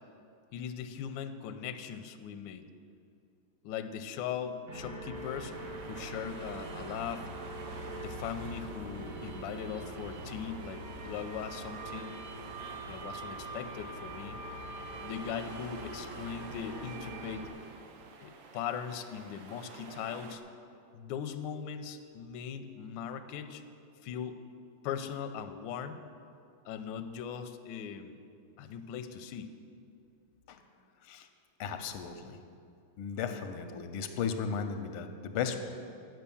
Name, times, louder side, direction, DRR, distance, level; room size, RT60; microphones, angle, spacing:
voice 1, 0.5-2.7 3.6-5.5 5.8-7.3 8.0-12.2 12.9-14.4 15.0-17.5 18.2-20.4 20.9-23.6 24.0-24.4 24.8-26.0 26.6-28.2 28.6-29.5, left 8 dB, 75° left, 8 dB, 1.1 m, -39 dB
sound 1, 4.7-17.5, right 2 dB, 50° right, 1.3 m, -43 dB
sound 2, 5.1-20.4, right 5 dB, 70° right, 1.4 m, -50 dB
voice 2, 31.6-32.4 33.0-35.6, left 6 dB, 90° left, 8 dB, 1.6 m, -35 dB
9.1 x 6.3 x 6.9 m, 2.5 s
omnidirectional pair, 2.3 m